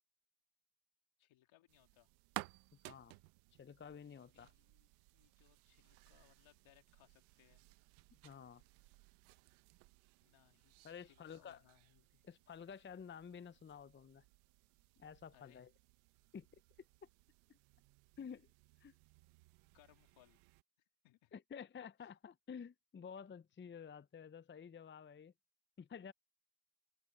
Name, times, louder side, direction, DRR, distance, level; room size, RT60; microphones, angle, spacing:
voice 1, 1.2-2.1 4.3-7.7 10.2-12.3 15.3-15.7 19.7-20.4 20.8-21.3 22.0-22.1, left 15 dB, 80° left, 2.8 m, -70 dB
sound 1, 1.7-20.6, right 22 dB, 90° right, 1.0 m, -58 dB
voice 2, 2.8-3.1 3.6-4.5 8.2-8.6 10.8-11.6 12.2-14.2 15.0-15.7 16.3-16.5 17.0-17.1 17.5-17.6 18.2-18.5 18.8-18.9 21.3-25.3 25.8-26.1, left 7 dB, 25° left, 0.7 m, -51 dB
hypercardioid pair, 50°, 47 cm